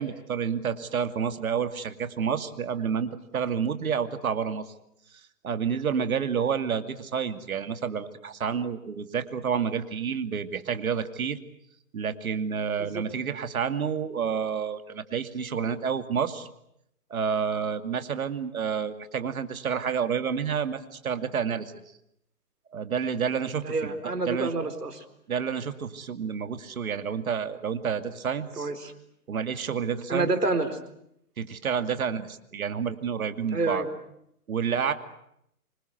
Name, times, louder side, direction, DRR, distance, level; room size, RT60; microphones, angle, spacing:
voice 1, 0.0-4.6 5.4-11.4 11.9-16.5 17.1-21.7 22.7-24.0 24.3-24.5 25.3-28.7 29.3-30.3 31.4-33.8 34.5-34.9, right 7 dB, 65° right, 9 dB, 2.6 m, -29 dB
voice 2, 23.6-25.0 28.6-28.9 30.1-30.8 33.5-33.9, right 3 dB, 85° right, 9 dB, 4.4 m, -28 dB
27.0 x 25.0 x 8.0 m, 0.77 s
hypercardioid pair, 140°, 46 cm